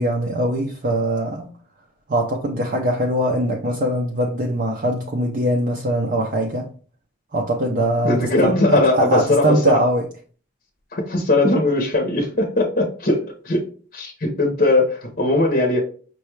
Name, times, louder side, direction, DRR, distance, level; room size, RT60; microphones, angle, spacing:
voice 1, 0.0-1.5 2.1-6.7 7.3-10.1, right 1 dB, 45° right, 0.5 m, -22 dB
voice 2, 8.0-9.8 10.9-13.6 13.9-15.8, left 2 dB, 45° left, 0.7 m, -19 dB
5.5 x 2.3 x 3.1 m
head